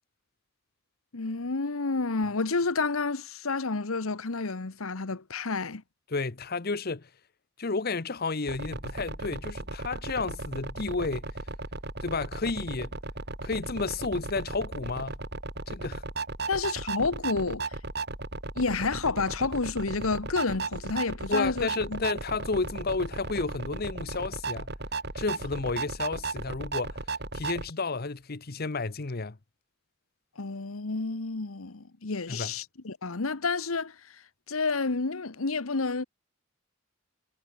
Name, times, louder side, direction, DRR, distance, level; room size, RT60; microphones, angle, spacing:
voice 1, 1.1-5.8 16.5-17.6 18.6-22.0 30.4-33.9 34.5-36.0, left 4 dB, 85° left, 1.2 m, -30 dB
voice 2, 6.1-7.1 7.6-11.2 12.0-12.9 13.4-15.2 15.7-16.0 21.3-24.7 25.1-27.0 27.3-29.4 32.3-32.5, left 3 dB, 50° left, 0.9 m, -31 dB
sound 1, 8.5-27.7, right 3 dB, 50° right, 5.8 m, -36 dB
head